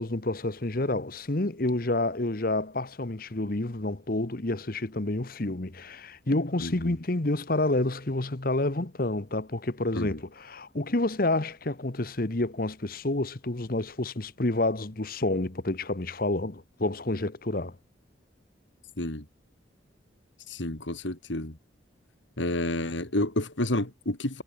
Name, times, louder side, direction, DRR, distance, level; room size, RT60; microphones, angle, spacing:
voice 1, 0.0-17.8, left 2 dB, 50° left, 1.3 m, -29 dB
voice 2, 6.6-6.9 9.9-10.2 19.0-19.2 20.5-21.6 22.4-24.4, left 1 dB, 75° left, 3.0 m, -30 dB
head